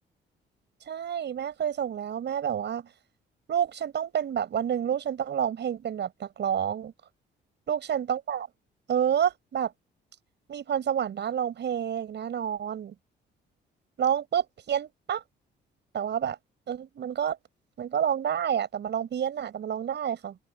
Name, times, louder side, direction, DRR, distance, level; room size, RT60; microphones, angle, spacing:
voice 1, 0.9-2.9 3.5-6.9 7.7-8.5 8.9-9.7 10.5-12.9 14.0-15.2 15.9-16.4 16.7-17.4 17.8-20.4, right 9 dB, 60° right, 6.4 m, -29 dB
open air
cardioid pair, 90°, 20 cm